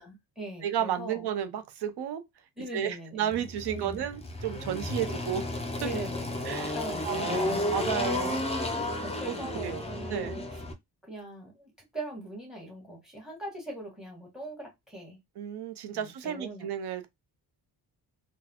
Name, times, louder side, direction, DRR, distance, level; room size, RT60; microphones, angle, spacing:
voice 1, 0.0-1.3 2.6-4.0 5.1-5.2 5.8-8.2 9.0-10.6 11.0-15.2 15.9-16.7, right 1 dB, ahead, 1.6 m, -41 dB
voice 2, 0.6-2.2 2.7-5.4 5.8-5.9 6.4-6.7 7.0-8.5 9.3-9.8 10.1-10.4 15.4-17.1, right 9 dB, 80° right, 0.7 m, -32 dB
Engine, 3.3-10.7, left 2 dB, 15° left, 0.5 m, -33 dB
3.9 x 2.3 x 2.9 m
wide cardioid pair, 155°, 39 cm